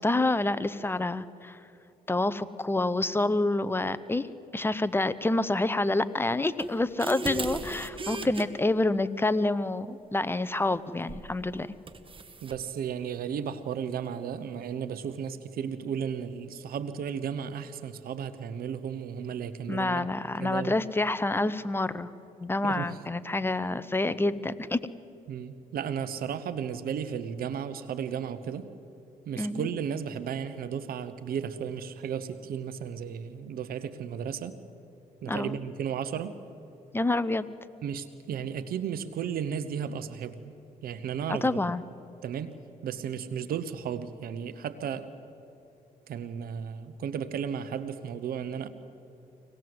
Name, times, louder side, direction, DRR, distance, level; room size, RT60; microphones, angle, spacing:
voice 1, 0.0-1.6 2.1-4.3 4.5-11.7 19.7-22.1 22.4-24.8 29.4-29.7 35.3-35.6 36.9-37.5 41.3-41.8, left 2 dB, 15° left, 14 dB, 0.9 m, -27 dB
sound 1, 6.6-8.5 11.1-11.3 11.9-12.6, right 2 dB, 35° right, 1.8 m, -36 dB
voice 2, 12.4-20.1 20.4-20.7 22.6-23.0 25.3-28.7 29.3-34.6 35.2-36.4 37.8-40.5 40.8-41.6 42.2-42.6 42.8-45.1 46.1-48.7, right 8 dB, 75° right, 12 dB, 1.0 m, -34 dB
25.0 x 18.5 x 7.9 m, 2.9 s
cardioid pair, 75°, 15 cm